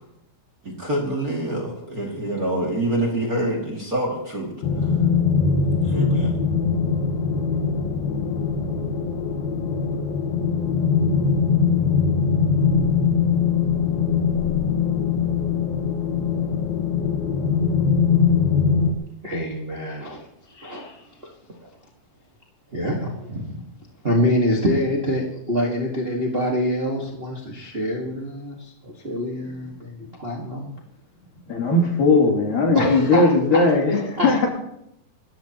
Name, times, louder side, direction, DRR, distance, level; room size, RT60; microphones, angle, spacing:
voice 1, 0.6-4.5 4.8-4.9 5.8-6.4, right 1 dB, 30° right, -1 dB, 2.2 m, -26 dB
sound 1, 4.6-18.9, left 5 dB, 85° left, 3.1 m, -21 dB
voice 2, 19.2-20.2 20.5-21.0 21.2-21.3 22.7-23.6 24.0-30.7 32.7-33.6 34.2-34.3, left 1 dB, 60° right, -1 dB, 0.6 m, -25 dB
voice 3, 31.5-34.5, left 3 dB, 65° left, 0 dB, 4.5 m, -18 dB
27.0 x 14.0 x 3.0 m, 0.80 s
omnidirectional pair, 4.3 m